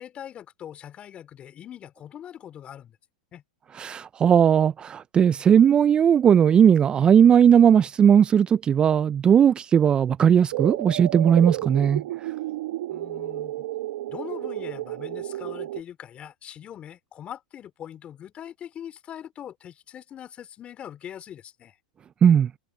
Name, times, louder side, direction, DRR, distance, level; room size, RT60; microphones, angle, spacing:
voice 1, 0.0-3.0 3.3-3.4 12.9-13.7 14.1-21.8, left 10 dB, 30° left, 3.1 m, -41 dB
voice 2, 3.7-12.0 22.2-22.5, right 8 dB, 20° right, 0.4 m, -18 dB
sound 1, 10.5-15.8, right 15 dB, 65° right, 1.0 m, -31 dB
hypercardioid pair, 120°, 4 cm